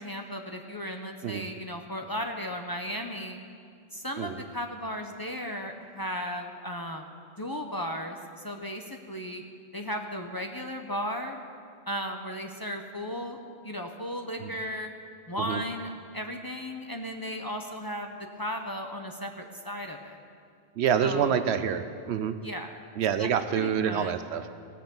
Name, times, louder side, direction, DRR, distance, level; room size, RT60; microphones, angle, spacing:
voice 1, 0.0-3.4 3.9-7.1 7.4-9.4 9.7-11.4 11.9-14.9 15.3-20.2 21.0-21.5 22.4-22.8 23.1-23.3 23.5-24.2, equal, 25° left, 3 dB, 0.7 m, -35 dB
voice 2, 20.8-22.3 23.0-24.6, right 8 dB, 80° right, 11 dB, 0.9 m, -27 dB
16.5 x 5.9 x 6.9 m, 2.3 s
omnidirectional pair, 1.1 m